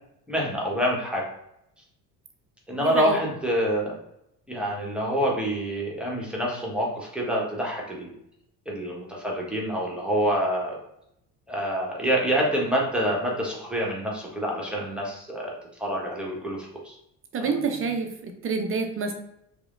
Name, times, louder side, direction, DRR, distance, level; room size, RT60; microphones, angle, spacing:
voice 1, 0.3-1.2 2.7-3.9 4.5-8.1 8.7-10.8 11.5-15.5 15.8-16.9 17.4-17.5, equal, ahead, -3 dB, 1.2 m, -27 dB
voice 2, 2.8-3.2 17.3-18.1 18.4-19.1, right 4 dB, 25° right, 4 dB, 0.7 m, -27 dB
4.8 x 2.9 x 2.5 m, 0.78 s
figure-of-eight pair, 55°, 48 cm